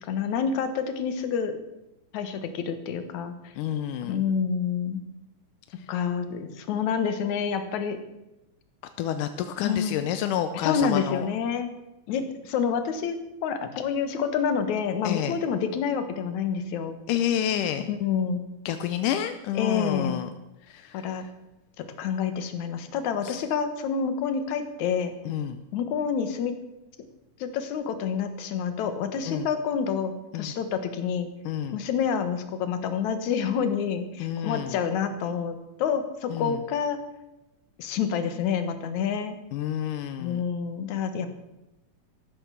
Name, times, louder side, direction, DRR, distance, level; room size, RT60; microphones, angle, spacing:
voice 1, 0.0-1.6 2.1-3.3 4.0-5.0 5.9-8.0 9.6-10.0 10.6-11.7 12.1-17.0 17.9-18.4 19.6-20.2 20.9-21.2 21.8-25.1 25.7-26.6 27.4-31.3 31.7-37.0 37.8-39.4 40.2-41.3, left 7 dB, 70° left, 9 dB, 2.7 m, -28 dB
voice 2, 3.6-4.2 9.0-11.2 15.0-15.4 17.1-17.9 18.7-20.3 20.7-21.0 23.2-23.4 25.3-25.6 29.3-29.5 30.3-30.5 31.5-31.8 34.2-34.8 36.3-36.6 39.5-40.4, left 10 dB, 85° left, 9 dB, 2.3 m, -29 dB
13.5 x 12.5 x 6.9 m, 0.93 s
omnidirectional pair, 3.6 m